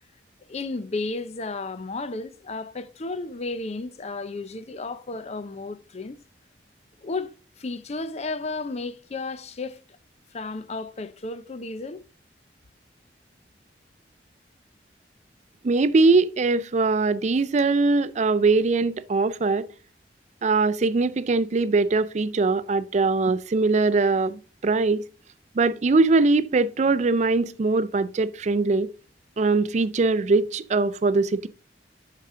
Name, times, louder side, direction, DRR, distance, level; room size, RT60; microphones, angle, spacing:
voice 1, 0.5-6.2 7.0-7.3 7.6-9.8 10.3-12.0, left 3 dB, 40° left, 0.5 m, -33 dB
voice 2, 15.6-19.7 20.4-25.0 25.6-28.9 29.4-31.5, right 3 dB, 40° right, 0.4 m, -21 dB
8.2 x 5.8 x 3.7 m
head